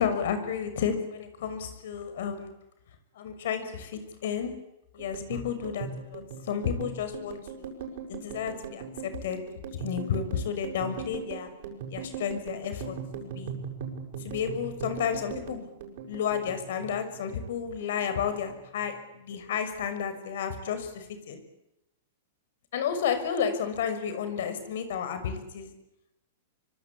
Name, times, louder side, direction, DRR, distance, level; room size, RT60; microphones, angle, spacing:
voice 1, 0.0-2.5 3.2-4.5 4.9-7.7 8.1-9.4 9.8-11.5 11.9-13.0 13.3-13.5 14.2-15.7 16.1-21.4 22.7-25.7, left 7 dB, 70° left, 10 dB, 6.2 m, -32 dB
sound 1, 5.0-17.6 17.8-18.9 19.1-19.5 19.8-20.5, right 6 dB, 60° right, 7.6 m, -40 dB
25.5 x 24.5 x 8.7 m, 0.89 s
hypercardioid pair, 145°, 0 cm